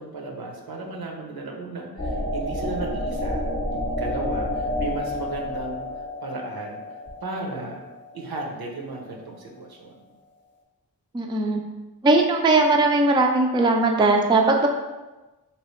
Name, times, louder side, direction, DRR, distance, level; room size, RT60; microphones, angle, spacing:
voice 1, 0.0-3.4 4.0-6.8 7.2-7.8 8.1-10.1, right 2 dB, 80° right, 0 dB, 0.7 m, -35 dB
sound 1, 2.0-8.6, left 1 dB, 30° left, 0.7 m, -30 dB
voice 2, 11.1-11.6 12.0-14.7, right 2 dB, 15° right, 2 dB, 0.3 m, -19 dB
3.1 x 2.8 x 3.0 m, 1.1 s
wide cardioid pair, 80°, 36 cm